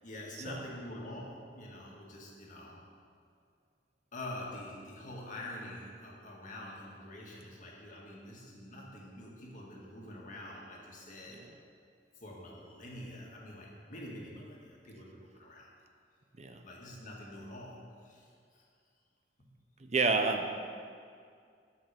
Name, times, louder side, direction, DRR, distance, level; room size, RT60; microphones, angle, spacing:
voice 1, 0.0-2.8 4.1-11.4 12.2-15.7 16.6-18.3 18.5-18.6, left 1 dB, 50° left, -3 dB, 1.9 m, -46 dB
voice 2, 19.8-20.5, right 4 dB, 40° right, 6 dB, 0.7 m, -30 dB
8.5 x 5.8 x 7.0 m, 2.2 s
head